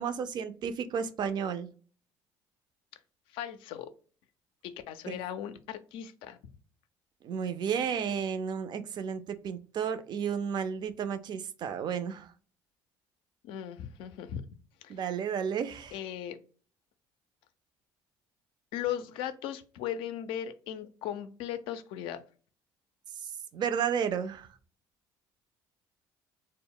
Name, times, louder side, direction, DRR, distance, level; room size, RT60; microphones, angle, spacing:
voice 1, 0.0-1.7 5.1-5.2 7.2-12.3 14.9-15.9 23.5-24.5, right 7 dB, 50° right, 0.4 m, -32 dB
voice 2, 3.3-3.9 4.6-6.4 13.4-14.4 14.8-15.0 15.9-16.4 18.7-22.2, left 10 dB, 75° left, 0.4 m, -37 dB
2.0 x 2.0 x 3.7 m
hypercardioid pair, 65°, 9 cm